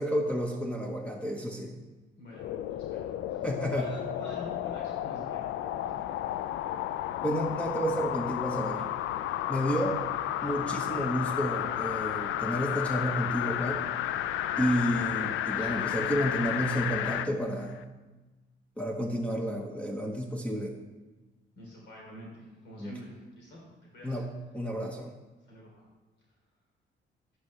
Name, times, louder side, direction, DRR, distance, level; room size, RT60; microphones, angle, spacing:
voice 1, 0.0-1.8 3.4-3.9 7.2-8.8 9.5-10.0 10.4-13.9 14.6-17.8 18.8-20.8 22.8-22.9 24.0-24.3 24.5-25.1, equal, 5° left, 2 dB, 1.0 m, -31 dB
voice 2, 2.2-5.5 5.8-6.2 9.7-10.0 15.5-15.7 21.6-23.7 23.9-24.2 25.4-25.8, left 1 dB, 65° left, -3 dB, 3.3 m, -47 dB
sound 1, 2.3-17.3 17.8-17.9, left 12 dB, 85° left, 0.4 m, -32 dB
11.5 x 9.1 x 3.2 m, 1.2 s
cardioid pair, 90°, 20 cm